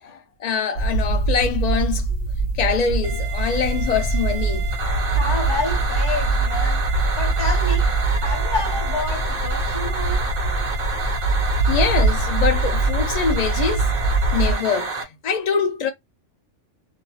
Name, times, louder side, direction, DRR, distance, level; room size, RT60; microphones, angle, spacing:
voice 1, 0.0-2.1 2.5-4.7 11.7-15.9, left 6 dB, 75° left, 0.3 m, -24 dB
sound 1, 0.8-14.5, right 3 dB, 55° left, 1.0 m, -23 dB
sound 2, 3.0-15.0, right 4 dB, 50° right, 1.1 m, -30 dB
voice 2, 5.1-6.9 7.2-10.4, left 3 dB, 20° left, 1.0 m, -29 dB
2.5 x 2.3 x 2.9 m
omnidirectional pair, 1.2 m